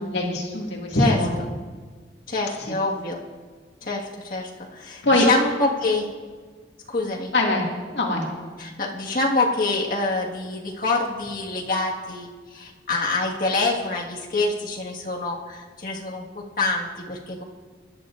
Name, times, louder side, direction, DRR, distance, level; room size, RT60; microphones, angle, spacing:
voice 1, 0.0-1.3 5.0-5.3 7.3-7.6 7.9-8.2, left 1 dB, 75° left, -2 dB, 2.2 m, -22 dB
voice 2, 2.3-3.2 3.8-6.1 6.9-7.3 8.6-17.4, left 3 dB, 50° left, -3 dB, 1.7 m, -26 dB
21.0 x 11.0 x 2.6 m, 1.5 s
head